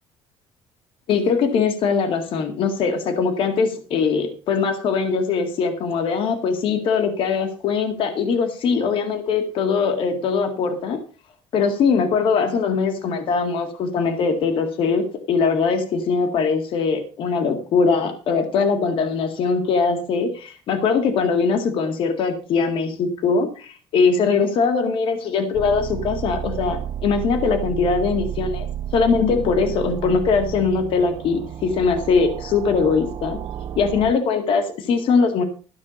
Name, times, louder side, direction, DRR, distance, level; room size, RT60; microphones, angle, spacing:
voice 1, 1.1-11.0 11.5-33.4 33.8-35.4, left 5 dB, 55° left, 7 dB, 1.9 m, -21 dB
sound 1, 25.5-34.1, right 9 dB, 45° right, 0.7 m, -31 dB
13.5 x 5.9 x 6.9 m, 0.37 s
cardioid pair, 145°, 10 cm